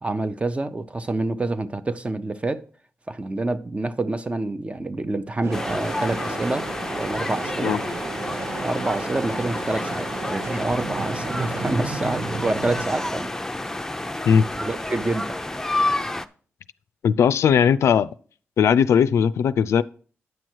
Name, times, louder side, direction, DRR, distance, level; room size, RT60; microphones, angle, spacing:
voice 1, 0.0-2.6 3.1-6.7 6.9-7.8 8.6-13.3 14.5-15.4, right 2 dB, 25° right, 0.7 m, -27 dB
sound 1, 5.4-12.9, right 4 dB, 70° right, 1.1 m, -33 dB
sound 2, 5.5-16.2, left 2 dB, 10° left, 0.6 m, -29 dB
voice 2, 17.0-18.1 18.6-19.8, left 7 dB, 80° left, 0.3 m, -18 dB
9.3 x 6.2 x 4.5 m
cardioid pair, 60°, 5 cm